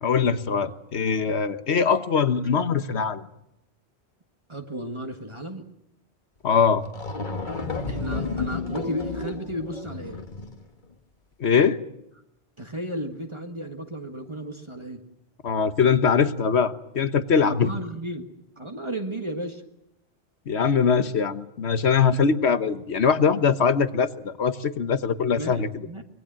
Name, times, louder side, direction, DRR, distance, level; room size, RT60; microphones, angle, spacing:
voice 1, 0.0-3.3 6.4-6.8 11.4-11.8 15.4-17.7 20.5-25.7, left 6 dB, 70° left, 12 dB, 1.4 m, -22 dB
voice 2, 4.5-5.7 7.2-7.3 7.9-10.2 12.6-15.0 17.4-18.2 18.6-19.6 25.3-26.0, right 1 dB, 25° right, 4 dB, 1.7 m, -34 dB
sound 1, 6.5-6.6 6.8-10.6, left 3 dB, 45° left, 1.7 m, -31 dB
25.0 x 21.0 x 7.6 m, 0.83 s
omnidirectional pair, 1.1 m